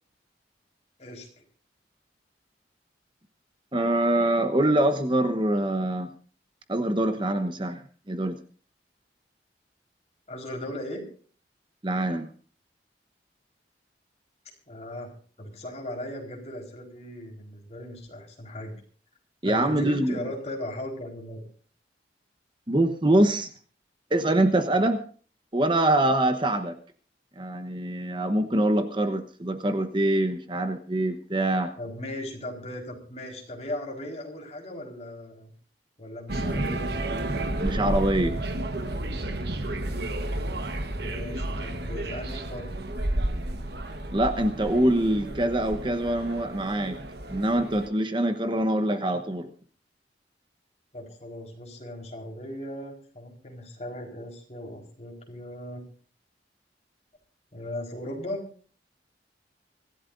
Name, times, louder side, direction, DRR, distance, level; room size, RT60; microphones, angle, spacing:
voice 1, 3.7-6.1 6.7-7.8 8.1-8.4 11.8-12.3 19.4-20.2 22.7-23.5 24.1-25.0 25.5-26.8 27.4-31.7 37.6-38.3 44.1-47.0 47.3-49.5, right 1 dB, 30° right, 8 dB, 1.1 m, -24 dB
voice 2, 10.3-11.0 14.7-15.1 15.4-18.7 19.4-21.4 31.8-35.5 36.0-36.9 40.9-42.7 50.9-55.8 57.5-58.4, left 1 dB, 40° left, 0 dB, 4.5 m, -37 dB
sound 1, 36.3-47.9, right 1 dB, 65° right, 1.3 m, -31 dB
25.0 x 15.0 x 2.6 m, 0.42 s
head